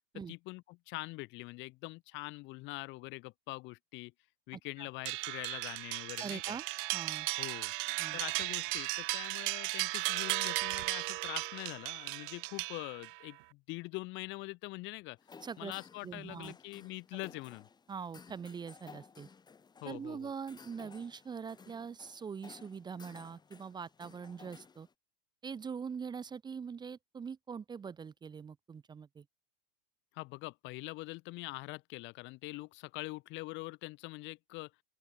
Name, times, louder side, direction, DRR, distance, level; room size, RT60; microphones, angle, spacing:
voice 1, 0.1-4.1 4.5-6.6 7.4-7.7 8.1-15.2 15.6-17.7 19.8-20.3 30.1-34.7, left 22 dB, 40° left, 1.3 m, -44 dB
voice 2, 4.5-4.9 6.2-6.6 6.9-7.3 8.0-8.2 15.4-15.7 16.0-16.5 17.9-19.3 19.8-24.9 25.4-29.2, right 6 dB, 15° right, 1.2 m, -43 dB
sound 1, 5.1-13.2, right 23 dB, 55° right, 1.9 m, -36 dB
sound 2, 15.2-24.9, left 5 dB, 15° left, 4.0 m, -57 dB
open air
supercardioid pair, 145°, 31 cm